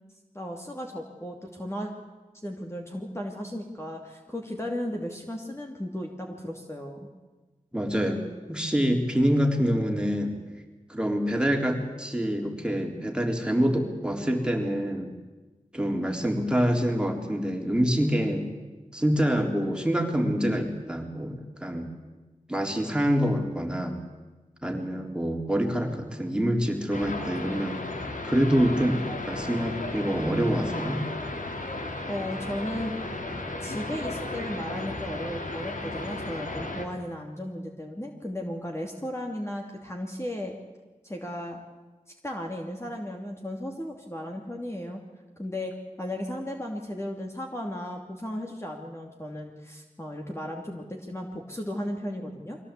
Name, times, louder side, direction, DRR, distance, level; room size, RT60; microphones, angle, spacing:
voice 1, 0.3-1.9 2.4-7.1 32.1-33.0 33.6-40.6 41.0-41.6 42.2-45.0 45.4-45.7 46.0-52.6, left 1 dB, 20° left, 1 dB, 2.7 m, -35 dB
voice 2, 7.7-8.2 8.5-10.4 10.9-15.1 15.7-18.5 18.9-21.9 22.5-24.0 24.6-27.8 28.2-31.0, equal, 5° right, 2 dB, 3.8 m, -26 dB
sound 1, 26.9-36.9, left 2 dB, 75° left, 2.6 m, -34 dB
23.0 x 17.0 x 8.4 m, 1.2 s
cardioid pair, 45°, 14 cm